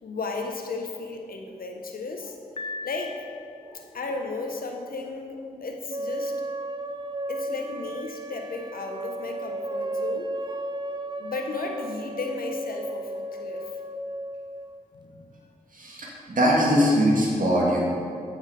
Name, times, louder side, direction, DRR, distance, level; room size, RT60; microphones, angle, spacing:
voice 1, 0.0-2.4 2.8-3.2 3.9-6.3 7.3-10.4 11.2-13.8 14.9-15.3, left 3 dB, 70° left, 2 dB, 1.1 m, -34 dB
Piano, 2.6-3.9, left 3 dB, 35° left, 0.7 m, -38 dB
sound 1, 5.9-14.8, right 1 dB, 30° right, 0.5 m, -34 dB
voice 2, 15.7-17.8, equal, 60° right, -4 dB, 2.2 m, -22 dB
8.1 x 6.4 x 4.9 m, 2.4 s
cardioid pair, 40°, 15 cm